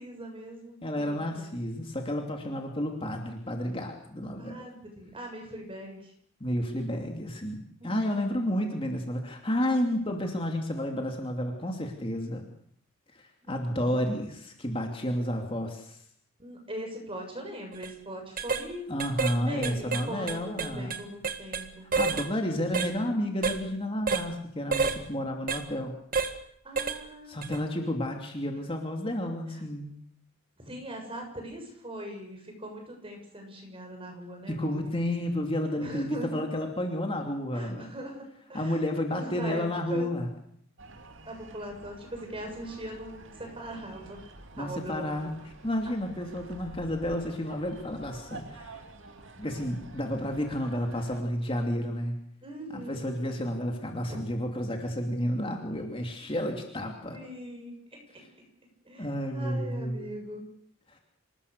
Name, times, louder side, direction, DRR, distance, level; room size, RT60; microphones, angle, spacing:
voice 1, 0.0-1.3 4.4-6.1 7.8-8.3 13.4-14.0 16.4-18.9 19.3-21.9 26.6-27.8 30.6-34.6 34.8-35.0 35.8-36.4 37.5-38.2 38.5-38.8 39.1-39.6 39.9-40.1 41.2-44.2 44.6-45.1 52.4-53.2 54.1-54.2 57.1-58.2 58.8-60.4, right 1 dB, 25° right, 3 dB, 6.9 m, -41 dB
voice 2, 0.8-4.6 6.4-12.5 13.1-16.0 18.9-20.9 21.9-26.0 27.3-29.9 34.5-37.9 38.5-40.3 44.6-48.8 49.4-52.2 52.7-57.2 59.0-60.1 60.9-61.0, equal, 25° left, 3 dB, 2.7 m, -31 dB
sound 1, 17.7-17.9 18.4-18.6 19.0-19.4 19.6-21.6 21.9-22.3 22.7-22.9 23.4-23.6 24.1-24.3 24.7-25.0 25.5-25.6 26.1-26.3 26.8-27.0 27.4-27.6, right 5 dB, 40° right, 1.8 m, -29 dB
sound 2, 40.8-51.2, right 2 dB, 60° right, 2.5 m, -49 dB
27.0 x 19.5 x 6.8 m, 0.66 s
head